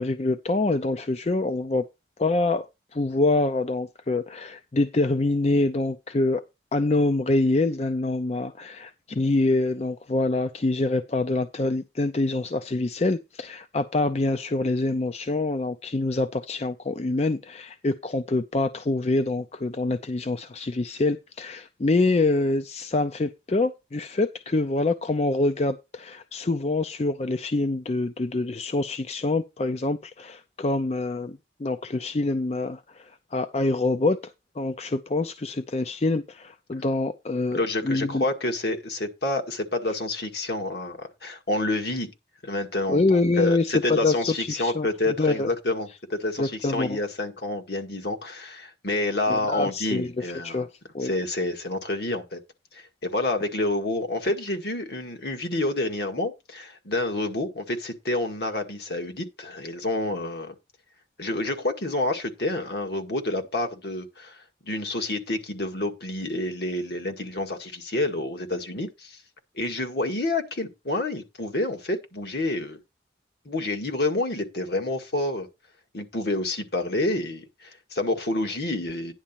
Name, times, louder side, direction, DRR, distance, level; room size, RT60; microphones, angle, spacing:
voice 1, 0.0-1.9 2.2-2.7 2.9-6.4 6.7-38.2 42.9-45.5 46.4-47.0 49.3-50.7 50.9-51.1, left 2 dB, 35° left, 0.5 m, -25 dB
voice 2, 37.5-42.1 42.4-50.6 51.0-52.4 52.7-60.5 61.2-64.4 64.6-69.2 69.6-72.8 73.5-75.5 75.9-79.1, left 2 dB, 65° left, 1.9 m, -28 dB
10.0 x 4.0 x 7.4 m
head